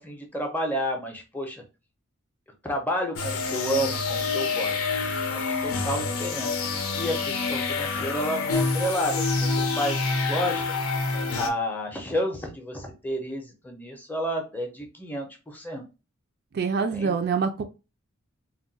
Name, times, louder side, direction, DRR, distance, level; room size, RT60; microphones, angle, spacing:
voice 1, 0.0-1.6 2.6-6.5 6.9-10.6 11.3-15.9 16.9-17.1, equal, 10° left, 2 dB, 0.6 m, -31 dB
sound 1, 3.2-11.5, left 4 dB, 75° left, 0.5 m, -27 dB
voice 2, 16.5-17.6, right 5 dB, 50° right, 6 dB, 0.3 m, -25 dB
2.3 x 2.1 x 3.8 m, 0.29 s
head